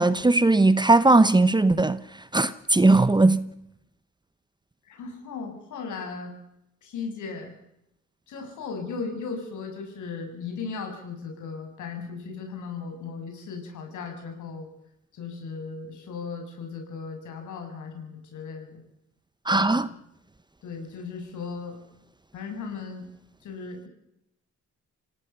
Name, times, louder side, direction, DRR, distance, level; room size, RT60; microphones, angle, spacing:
voice 1, 0.0-2.0 2.3-3.5 19.5-19.9, right 2 dB, 15° right, 1.0 m, -19 dB
voice 2, 4.9-6.4 6.8-7.5 8.3-14.7 15.1-18.8 19.5-19.8 20.6-21.8 22.3-23.1 23.4-23.9, left 5 dB, 75° left, 7.0 m, -36 dB
26.5 x 17.5 x 7.0 m
cardioid pair, 90°, 30 cm